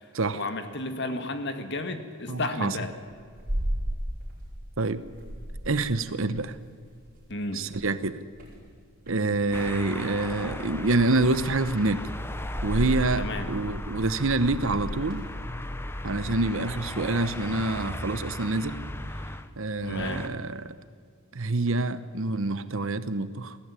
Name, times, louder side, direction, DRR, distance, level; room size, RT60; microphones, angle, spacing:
voice 1, 0.3-2.9 7.3-7.6 13.2-13.5 19.8-20.2, left 2 dB, 50° left, 8 dB, 1.8 m, -32 dB
voice 2, 2.3-2.8 4.8-5.0 5.6-6.6 7.5-8.2 9.1-12.1 12.6-15.3 16.0-18.8 19.6-20.7 21.3-23.6, right 2 dB, 60° right, 13 dB, 1.0 m, -27 dB
sound 1, 2.7-4.7 5.0-7.3 7.6-9.2 10.3-10.7 11.1-15.3, equal, 40° right, 6.8 m, -35 dB
sound 2, 9.5-19.5 19.8-20.3, left 1 dB, 10° left, 0.8 m, -37 dB
21.0 x 15.5 x 9.8 m, 2.1 s
head